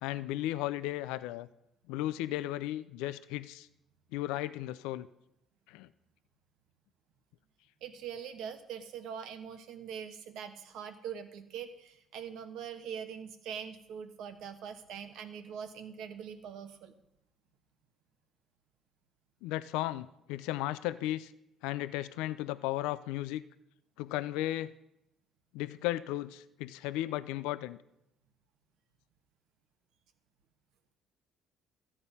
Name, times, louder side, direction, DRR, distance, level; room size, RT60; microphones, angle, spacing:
voice 1, 0.0-1.5 1.9-3.7 4.1-5.1 5.7-5.9 19.4-21.3 21.6-23.4 24.0-24.7 25.5-27.8, left 15 dB, 85° left, 14 dB, 0.4 m, -35 dB
voice 2, 7.8-16.9, right 8 dB, 75° right, 8 dB, 1.2 m, -43 dB
13.5 x 8.6 x 5.4 m, 0.81 s
supercardioid pair, 65°, 0 cm